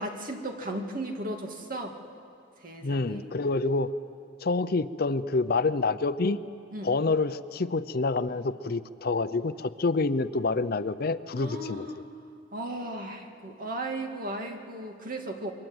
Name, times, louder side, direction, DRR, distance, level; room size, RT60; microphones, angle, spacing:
voice 1, 0.0-2.0 2.6-3.3 6.7-7.0 11.3-12.0 12.5-15.5, right 1 dB, 45° right, 3 dB, 2.2 m, -36 dB
voice 2, 2.8-3.9 4.4-6.4 6.8-11.9, left 3 dB, 50° left, 13 dB, 0.6 m, -27 dB
28.0 x 23.0 x 7.9 m, 2.6 s
head